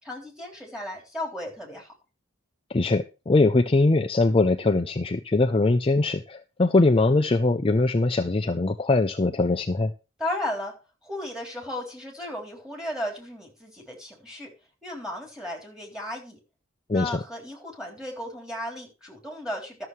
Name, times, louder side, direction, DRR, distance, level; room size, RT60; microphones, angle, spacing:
voice 1, 0.0-1.9 10.2-10.7 11.0-14.5 14.8-16.4 16.9-19.9, left 1 dB, 5° right, 0 dB, 3.5 m, -35 dB
voice 2, 2.7-9.9 16.9-17.2, left 2 dB, 25° left, 6 dB, 0.5 m, -22 dB
12.5 x 6.9 x 4.6 m, 0.30 s
head